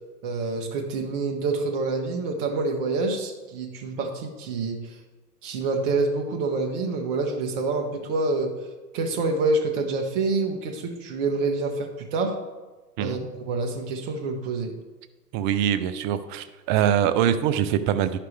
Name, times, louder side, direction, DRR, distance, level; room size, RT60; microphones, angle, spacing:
voice 1, 0.2-4.8 5.4-8.5 8.9-12.3 13.0-14.7, right 3 dB, 50° right, 2 dB, 1.4 m, -27 dB
voice 2, 13.0-13.3 15.3-18.2, right 10 dB, 30° right, 11 dB, 0.5 m, -23 dB
11.0 x 5.8 x 3.4 m, 1.2 s
hypercardioid pair, 110°, 48 cm